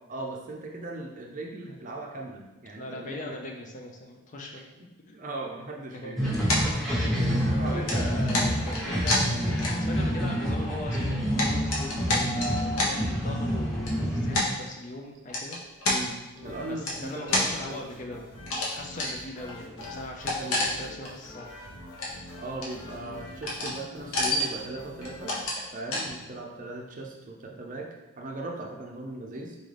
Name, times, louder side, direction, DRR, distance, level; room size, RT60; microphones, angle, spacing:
voice 1, 0.1-3.3 4.5-4.6 5.1-6.3 6.9-8.1 15.9-17.8 20.3-20.6 22.4-25.3 25.7-27.9 28.2-29.6, right 2 dB, 35° right, 0 dB, 0.6 m, -38 dB
voice 2, 2.8-5.2 6.0-6.3 7.0-7.4 7.6-15.6 16.7-21.5, left 2 dB, 35° left, 2 dB, 0.5 m, -40 dB
sound 1, 6.2-14.4, equal, ahead, 0.9 m, -28 dB
sound 2, 6.5-7.5 7.9-10.1 10.4-10.5 11.0-12.9 13.8-13.9 14.3-14.5 15.3-16.0 16.9-17.5 18.4-18.7 19.0-19.1 19.5-19.6 19.8-21.1 21.4-21.5 21.8-22.3 22.6-23.1 23.4-23.8 24.0-24.6 25.0-25.6 25.9-26.1, left 2 dB, 90° left, 1.0 m, -28 dB
sound 3, 16.3-25.5, left 1 dB, 55° left, 1.0 m, -46 dB
4.1 x 3.8 x 3.3 m, 1.0 s
head